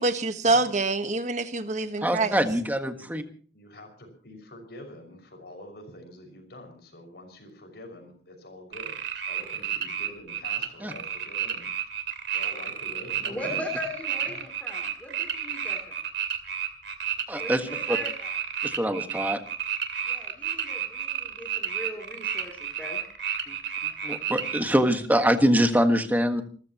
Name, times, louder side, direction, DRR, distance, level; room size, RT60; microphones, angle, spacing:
voice 1, 0.0-2.3, right 3 dB, 40° right, 9 dB, 1.4 m, -25 dB
voice 2, 2.0-3.2 10.8-10.9 17.3-18.0 18.6-19.4 23.5-23.6 24.0-26.4, equal, 10° right, 7 dB, 1.5 m, -24 dB
voice 3, 3.5-8.9 9.3-11.7 12.3-13.8 14.2-14.4, left 1 dB, 60° left, 4 dB, 6.0 m, -46 dB
sound 1, 8.7-24.6, right 8 dB, 75° right, 2.6 m, -31 dB
voice 4, 13.2-16.0 17.4-18.3 20.0-23.0, left 1 dB, 10° left, 2 dB, 3.1 m, -39 dB
28.5 x 14.5 x 3.0 m, 0.43 s
head